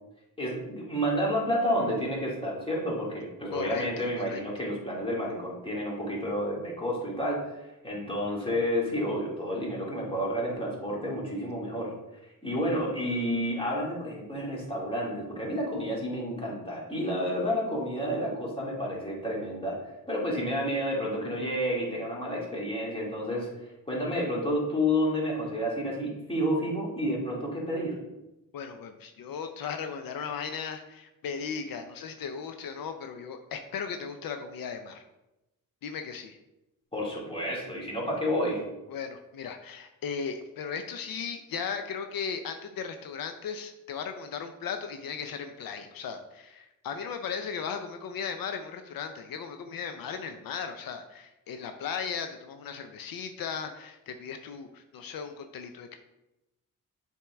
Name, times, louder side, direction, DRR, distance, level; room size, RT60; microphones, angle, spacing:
voice 1, 0.4-11.9 12.4-19.8 20.1-23.5 23.9-28.0 36.9-38.6, equal, 15° left, -4 dB, 2.1 m, -30 dB
voice 2, 3.5-4.4 28.5-35.0 35.8-36.4 38.9-56.0, left 6 dB, 80° left, 7 dB, 0.6 m, -37 dB
7.0 x 4.5 x 3.4 m, 0.96 s
cardioid pair, 90°, 34 cm